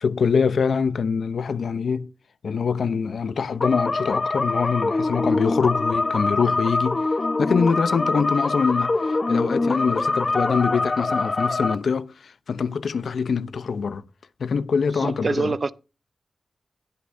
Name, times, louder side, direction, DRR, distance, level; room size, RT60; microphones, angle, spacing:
voice 1, 0.0-2.1 2.4-7.1 7.4-14.0 14.4-15.6, left 5 dB, 80° left, 0.7 m, -24 dB
sound 1, 3.6-11.8, left 3 dB, 40° left, 1.0 m, -24 dB
voice 2, 15.0-15.7, right 4 dB, 50° right, 0.5 m, -26 dB
21.0 x 8.4 x 2.7 m
cardioid pair, 65°, 0 cm